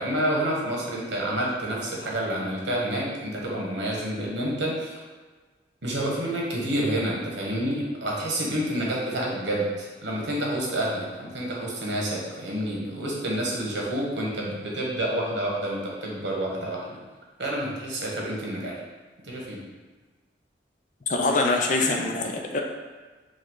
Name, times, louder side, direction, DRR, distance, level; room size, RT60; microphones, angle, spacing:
voice 1, 0.0-5.0 5.8-17.0 17.4-18.8 19.2-19.6, right 1 dB, 75° right, -3 dB, 1.1 m, -28 dB
voice 2, 21.1-22.6, left 2 dB, 45° left, 2 dB, 0.5 m, -24 dB
5.3 x 2.4 x 3.7 m, 1.3 s
head